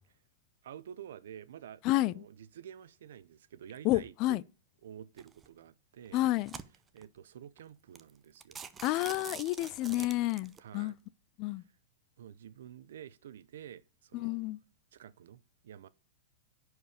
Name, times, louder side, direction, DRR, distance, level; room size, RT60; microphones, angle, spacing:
voice 1, 0.6-4.4 4.8-6.2 6.9-8.6 10.6-11.0 11.4-11.7 12.2-14.4 14.9-15.9, right 9 dB, 75° right, 0.8 m, -50 dB
voice 2, 3.8-4.4 6.1-6.5 8.8-10.9 11.4-11.6 14.1-14.6, left 17 dB, 35° left, 0.3 m, -30 dB
sound 1, 5.2-5.5 6.1-7.0 7.6-7.7 8.0-8.1 8.4-10.6, right 6 dB, 15° right, 0.6 m, -46 dB
10.5 x 4.8 x 4.9 m
supercardioid pair, 160°, 0 cm